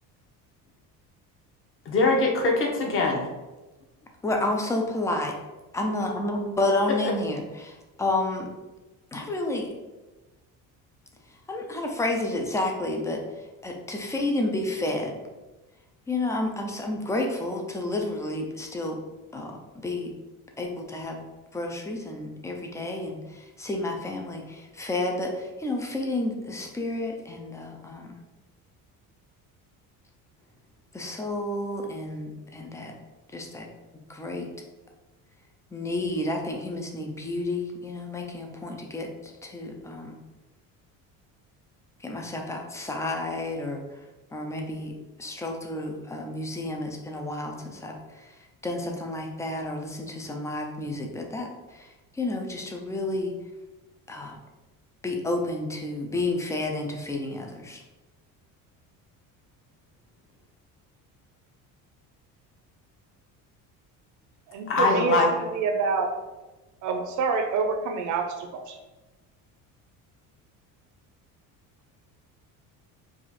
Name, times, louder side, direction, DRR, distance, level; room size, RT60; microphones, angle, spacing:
voice 1, 1.9-3.2 64.7-65.3, left 3 dB, 35° left, 0 dB, 1.0 m, -22 dB
voice 2, 4.2-5.3 5.7-8.5 9.1-9.7 11.5-13.2 13.6-15.2 16.1-19.0 19.3-20.1 20.6-21.2 21.5-28.1 30.9-33.0 33.3-33.7 34.1-34.5 35.7-40.2 42.0-43.8 44.3-44.9 45.2-48.3 48.6-53.3 54.1-54.4 55.0-57.8, left 2 dB, 10° left, 2 dB, 0.4 m, -30 dB
voice 3, 64.5-66.1 66.8-68.8, right 4 dB, 55° right, 5 dB, 0.7 m, -27 dB
4.8 x 2.5 x 4.1 m, 1.1 s
cardioid pair, 160°, 35 cm